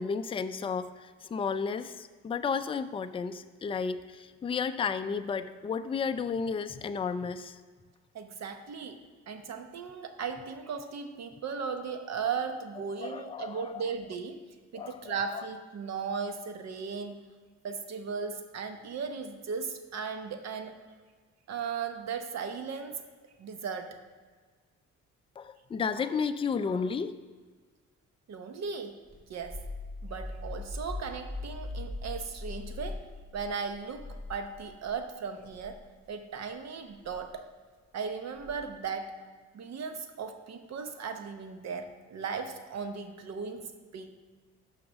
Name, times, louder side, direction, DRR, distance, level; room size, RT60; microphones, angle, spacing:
voice 1, 0.0-7.6 13.0-13.8 14.7-15.4 25.4-27.1, left 5 dB, 20° left, 10 dB, 0.3 m, -33 dB
voice 2, 8.1-14.4 14.7-17.2 17.6-20.8 21.5-24.0 28.3-29.0 29.3-29.7 30.0-33.1 33.3-35.8 36.1-37.5 37.9-39.2 39.5-44.1, right 5 dB, 60° right, 7 dB, 0.9 m, -37 dB
sound 1, 29.1-35.0 35.4-35.7 36.9-37.2 38.4-38.8, left 2 dB, 25° right, 2.3 m, -40 dB
6.1 x 5.0 x 6.1 m, 1.5 s
cardioid pair, 90°, 30 cm